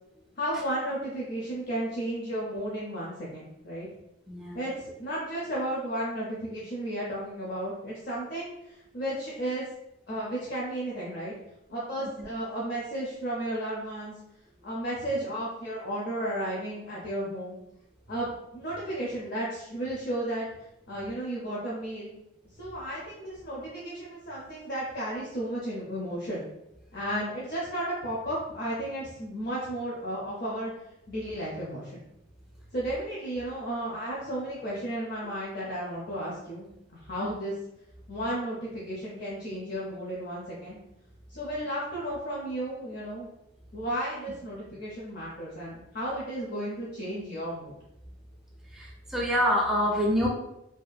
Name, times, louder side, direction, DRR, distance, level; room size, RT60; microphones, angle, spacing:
voice 1, 0.4-3.9 4.5-9.6 10.1-11.3 11.7-14.2 14.6-17.6 18.1-20.5 20.9-22.1 22.6-26.4 26.9-30.7 31.1-32.0 32.7-37.5 38.1-40.8 41.3-43.3 43.7-47.7, right 1 dB, 55° left, -5 dB, 0.5 m, -33 dB
voice 2, 4.3-4.6 12.2-12.3 35.2-35.3 37.2-37.3 48.7-50.3, equal, ahead, -2 dB, 0.4 m, -27 dB
2.7 x 2.4 x 2.2 m, 0.87 s
head